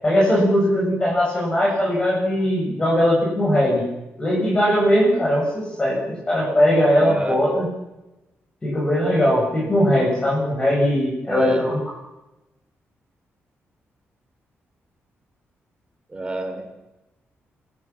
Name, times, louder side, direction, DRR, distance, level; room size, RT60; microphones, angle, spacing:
voice 1, 0.0-3.9 4.2-7.6 8.6-11.8, equal, 20° left, -3 dB, 7.7 m, -19 dB
voice 2, 7.0-7.4 11.3-11.7 16.1-16.6, right 2 dB, 20° right, 4 dB, 4.2 m, -29 dB
27.5 x 17.0 x 7.5 m, 1.0 s
wide cardioid pair, 145°, 5 cm